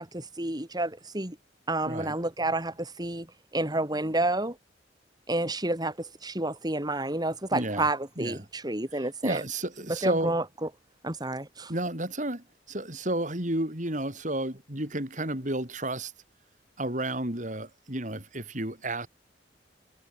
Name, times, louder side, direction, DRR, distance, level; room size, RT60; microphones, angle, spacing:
voice 1, 0.0-1.4 1.7-3.3 3.5-4.6 5.3-9.4 9.9-10.7 11.0-11.7, right 2 dB, 20° right, 3.5 m, -30 dB
voice 2, 1.9-2.2 7.5-7.9 8.2-8.4 9.2-10.3 11.7-16.1 16.8-19.1, right 1 dB, 45° right, 6.5 m, -32 dB
head